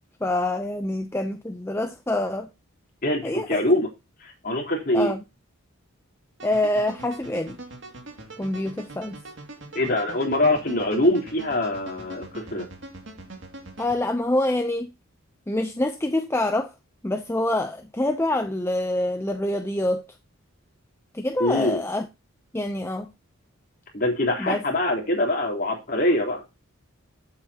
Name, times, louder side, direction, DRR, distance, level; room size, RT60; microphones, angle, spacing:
voice 1, 0.2-2.5 3.2-3.6 4.9-5.2 6.4-7.6 8.4-9.2 13.8-14.9 15.5-16.7 17.0-20.0 21.1-22.1 22.5-23.1 24.4-24.6, left 1 dB, 10° left, 0.6 m, -26 dB
voice 2, 3.0-3.9 4.2-5.1 9.8-12.7 21.4-21.8 23.9-26.4, left 1 dB, 40° left, 3.9 m, -24 dB
sound 1, 6.4-14.0, right 1 dB, 55° right, 2.4 m, -42 dB
15.0 x 8.0 x 2.9 m
head